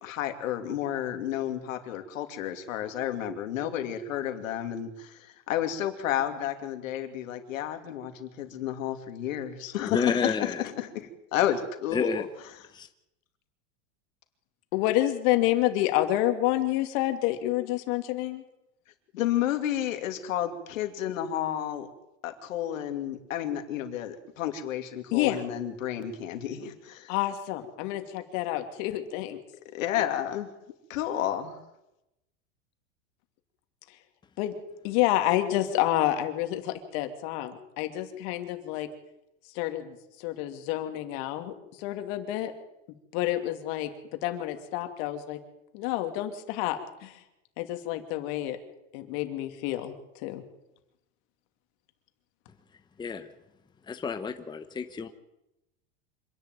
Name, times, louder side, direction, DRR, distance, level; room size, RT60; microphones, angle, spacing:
voice 1, 0.0-12.3 19.1-21.9 22.2-27.1 29.7-30.5 30.9-31.6, left 11 dB, 90° left, 7 dB, 2.8 m, -31 dB
voice 2, 9.9-10.6 11.9-12.2 12.7-12.9 53.0-53.3 53.9-55.1, left 5 dB, 10° left, 7 dB, 1.0 m, -30 dB
voice 3, 14.7-18.4 25.1-25.4 27.1-29.4 34.4-34.5 34.8-38.9 39.5-42.5 43.1-43.9 44.2-45.4 45.7-47.2 47.6-48.6 48.9-50.4, left 14 dB, 55° left, 7 dB, 2.9 m, -28 dB
26.0 x 11.0 x 9.2 m, 0.90 s
supercardioid pair, 140°, 38 cm